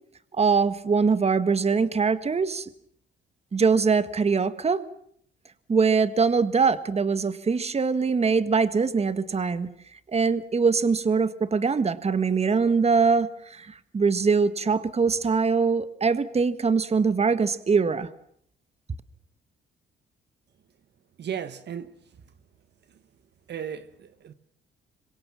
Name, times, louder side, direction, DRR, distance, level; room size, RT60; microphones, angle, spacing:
voice 1, 0.3-2.7 3.5-4.8 5.7-9.7 10.1-18.1, right 5 dB, 30° right, 1.6 m, -23 dB
voice 2, 21.2-21.9 23.5-24.3, right 8 dB, 60° right, 1.4 m, -35 dB
26.0 x 23.5 x 7.4 m
cardioid pair, 90°, 20 cm